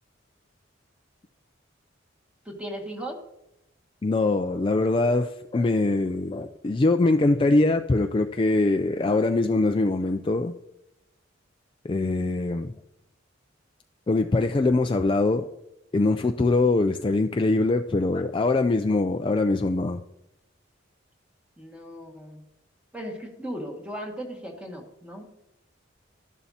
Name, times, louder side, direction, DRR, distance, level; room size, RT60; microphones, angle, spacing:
voice 1, 2.5-3.2 21.6-22.4 22.9-25.3, equal, 5° right, 0 dB, 1.8 m, -37 dB
voice 2, 4.0-10.5 11.8-12.7 14.1-15.5 15.9-20.0, left 2 dB, 25° left, 6 dB, 0.4 m, -23 dB
13.0 x 11.0 x 2.8 m, 0.87 s
head